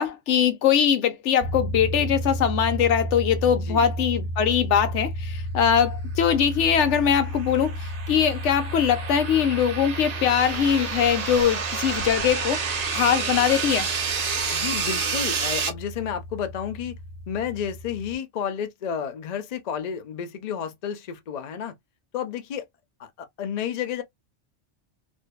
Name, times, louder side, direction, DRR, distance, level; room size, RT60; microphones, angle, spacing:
voice 1, 0.0-7.7 8.1-12.6 12.9-13.9, left 8 dB, 75° left, 0.9 m, -22 dB
sound 1, 1.4-18.1, equal, 90° right, 0.3 m, -33 dB
voice 2, 3.5-3.9 14.5-17.0 17.3-21.7 22.1-22.7 23.0-24.0, left 8 dB, 50° left, 0.5 m, -31 dB
sound 2, 6.7-15.7, right 5 dB, 45° right, 0.6 m, -29 dB
sound 3, 10.4-15.5, right 5 dB, 65° right, 0.9 m, -40 dB
2.6 x 2.2 x 2.2 m
omnidirectional pair, 1.2 m